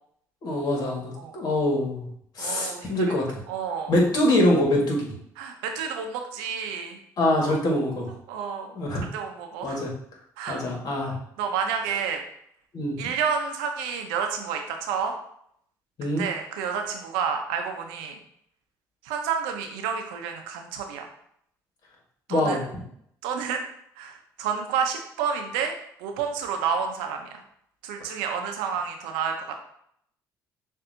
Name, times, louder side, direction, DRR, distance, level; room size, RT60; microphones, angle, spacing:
voice 1, 0.4-2.1 2.4-3.3 3.9-5.1 7.2-8.1 8.8-9.0 9.6-9.9 10.5-11.2 12.7-13.0 16.0-16.2 22.3-22.6, left 1 dB, 55° left, -1 dB, 1.7 m, -24 dB
voice 2, 2.4-3.1 3.5-4.0 5.4-7.0 7.4-7.9 8.3-8.7 9.1-9.8 10.4-10.6 11.4-12.2 13.0-15.1 16.0-18.2 19.0-21.1 22.3-22.6 23.2-23.6 24.0-25.7 26.0-27.3 27.8-29.5, right 6 dB, 90° right, 4 dB, 0.7 m, -30 dB
6.7 x 2.7 x 2.7 m, 0.70 s
supercardioid pair, 75°, 8 cm